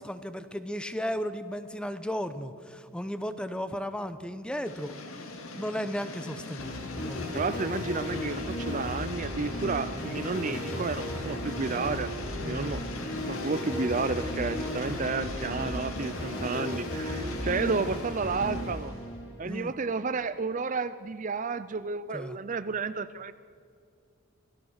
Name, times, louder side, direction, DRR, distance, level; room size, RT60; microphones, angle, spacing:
voice 1, 0.0-4.9 5.5-7.3 10.7-10.8 12.4-12.6 19.4-19.7 22.1-22.4, equal, 5° left, 11 dB, 0.8 m, -35 dB
sound 1, 4.6-19.1, left 3 dB, 70° left, 2.3 m, -41 dB
sound 2, 6.6-19.5, left 1 dB, 50° left, 5.4 m, -35 dB
voice 2, 7.3-12.1 12.5-12.8 13.3-18.9 19.4-23.3, right 4 dB, 35° right, 13 dB, 0.5 m, -31 dB
27.0 x 17.0 x 6.4 m, 2.5 s
head